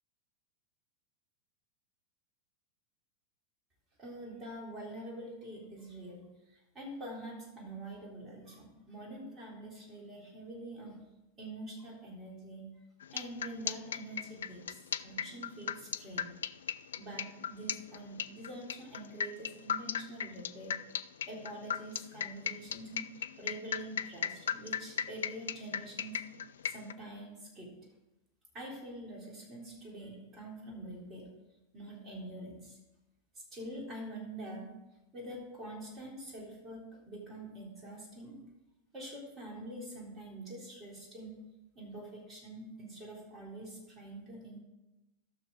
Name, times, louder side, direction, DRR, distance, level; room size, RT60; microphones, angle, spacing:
voice 1, 4.0-11.0 11.4-12.7 13.1-16.3 17.0-20.8 21.3-23.1 23.4-26.2 26.6-27.8 28.5-31.3 31.7-32.8 33.5-34.7 35.1-38.4 38.9-41.4 41.7-44.6, right 1 dB, 25° right, -2 dB, 3.5 m, -45 dB
sound 1, 13.0-26.9, left 8 dB, 65° left, 0.3 m, -36 dB
16.0 x 6.3 x 3.8 m, 0.99 s
figure-of-eight pair, 90°, 0 cm